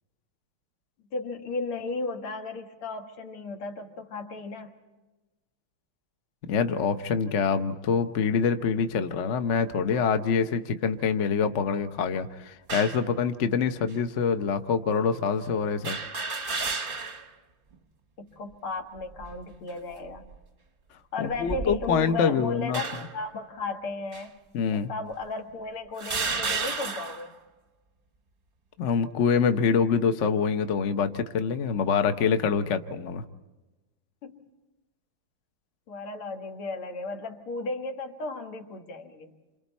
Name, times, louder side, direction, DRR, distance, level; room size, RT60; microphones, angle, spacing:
voice 1, 1.1-4.8 18.2-20.3 21.1-24.4 24.7-27.3 34.2-34.5 35.9-39.3, left 3 dB, 80° left, 3 dB, 2.6 m, -35 dB
voice 2, 6.5-16.0 21.2-22.8 24.5-24.9 28.8-33.2, left 6 dB, 50° left, 8 dB, 0.9 m, -25 dB
sound 1, 12.7-13.1 13.9-14.0 15.8-17.3 17.7-17.8 19.0-19.4 20.1-20.4 21.3-22.1 22.7-23.2 24.1-24.2 25.1-25.2 26.0-27.3, right 4 dB, 35° right, 0.9 m, -32 dB
29.0 x 27.0 x 4.2 m, 1.1 s
omnidirectional pair, 2.4 m